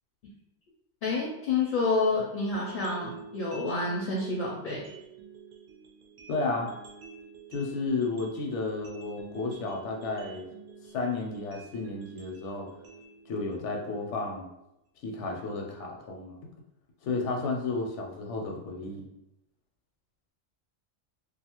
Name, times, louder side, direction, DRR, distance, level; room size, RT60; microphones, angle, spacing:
voice 1, 1.0-4.9, left 3 dB, 60° left, -2 dB, 0.6 m, -29 dB
sound 1, 2.5-14.5, right 5 dB, 60° right, 0.6 m, -48 dB
voice 2, 6.3-6.7 7.5-10.4 10.9-12.7 13.3-14.5 15.0-16.4 17.0-19.1, left 3 dB, 85° left, 1 dB, 0.9 m, -32 dB
2.5 x 2.3 x 2.9 m, 0.86 s
omnidirectional pair, 1.2 m